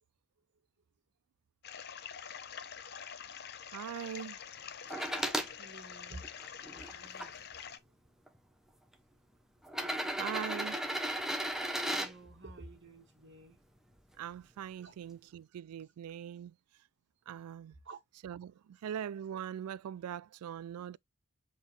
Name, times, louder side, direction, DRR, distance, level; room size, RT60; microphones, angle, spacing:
sound 1, 1.6-7.8, left 8 dB, 45° left, 0.8 m, -46 dB
voice 1, 3.7-4.4 10.2-10.8 14.2-16.5 17.3-17.7 18.2-21.0, right 9 dB, 90° right, 0.3 m, -41 dB
sound 2, 4.9-5.5 6.2-7.3 8.3-8.4 9.6-12.1 14.0-14.1, right 1 dB, ahead, 0.9 m, -35 dB
voice 2, 5.6-6.2 6.7-7.3 11.9-13.6 14.8-14.9 17.8-18.0, right 2 dB, 55° right, 1.6 m, -50 dB
7.2 x 4.0 x 3.3 m
head